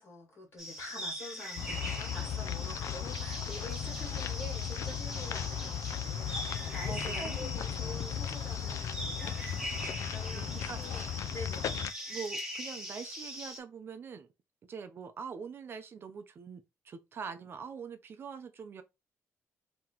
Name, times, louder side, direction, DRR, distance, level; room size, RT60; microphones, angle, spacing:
voice 1, 0.0-11.8, left 2 dB, 50° left, 1.9 m, -47 dB
sound 1, 0.6-13.6, equal, 10° right, 1.3 m, -41 dB
sound 2, 1.6-11.9, left 9 dB, 70° left, 0.4 m, -36 dB
voice 2, 6.8-8.0 10.3-11.2 12.1-14.3 14.7-18.8, right 6 dB, 45° right, 0.7 m, -44 dB
3.8 x 3.0 x 2.9 m
cardioid pair, 130°, 5 cm